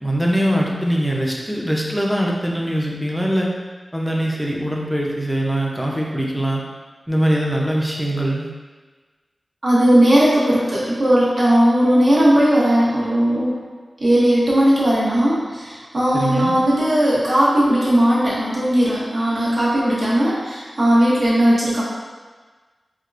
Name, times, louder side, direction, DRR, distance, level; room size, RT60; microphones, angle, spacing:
voice 1, 0.0-3.5 3.9-6.6 7.1-8.5 16.1-16.5, right 1 dB, 5° right, -2 dB, 0.5 m, -22 dB
voice 2, 9.6-13.6 14.0-21.8, equal, 60° right, -7 dB, 0.9 m, -17 dB
3.5 x 2.4 x 2.4 m, 1.4 s
wide cardioid pair, 55°, 0 cm